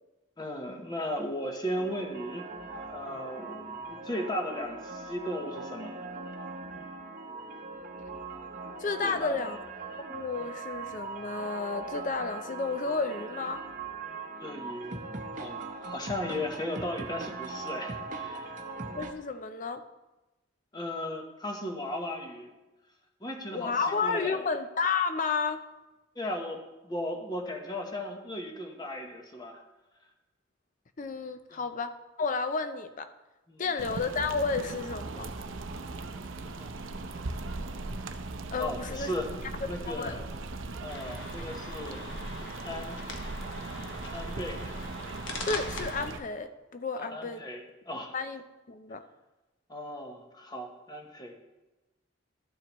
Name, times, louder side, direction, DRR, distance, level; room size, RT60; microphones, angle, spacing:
voice 1, 0.4-6.0 9.0-9.5 14.4-15.1 15.4-18.6 20.7-22.5 23.2-24.5 26.1-29.6 31.5-31.6 33.5-33.7 36.5-36.7 38.6-39.3 39.6-40.2 40.8-42.0 42.6-43.0 44.1-44.6 47.0-48.1 49.7-51.3, left 1 dB, 20° left, 3 dB, 1.0 m, -36 dB
sound 1, 1.8-19.1, right 3 dB, 40° right, 0.9 m, -40 dB
voice 2, 8.8-9.6 10.1-13.6 18.9-19.8 23.5-25.6 31.0-33.1 33.6-35.3 38.5-39.1 39.9-40.1 45.5-47.4 48.1-48.4 48.7-49.0, left 4 dB, 40° left, 9 dB, 0.5 m, -31 dB
sound 2, 33.8-46.2, right 2 dB, 80° right, 0.6 m, -39 dB
sound 3, 40.9-46.1, left 3 dB, 70° left, 1.2 m, -42 dB
12.5 x 7.4 x 3.1 m, 1.1 s
head